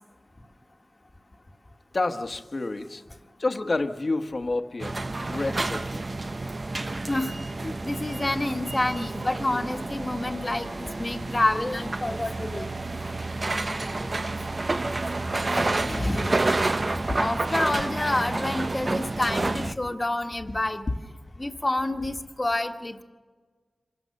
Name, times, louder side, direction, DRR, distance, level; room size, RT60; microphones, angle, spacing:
voice 1, 1.9-3.0 3.4-4.9 5.3-6.0, left 2 dB, 45° left, 7 dB, 1.2 m, -29 dB
sound 1, 4.8-19.7, right 2 dB, 35° right, 0.5 m, -29 dB
voice 2, 7.6-12.7 15.5-16.3 17.2-20.8 21.4-23.0, left 2 dB, 25° left, 5 dB, 1.4 m, -28 dB
25.5 x 16.0 x 6.5 m, 1.4 s
wide cardioid pair, 90°, 0 cm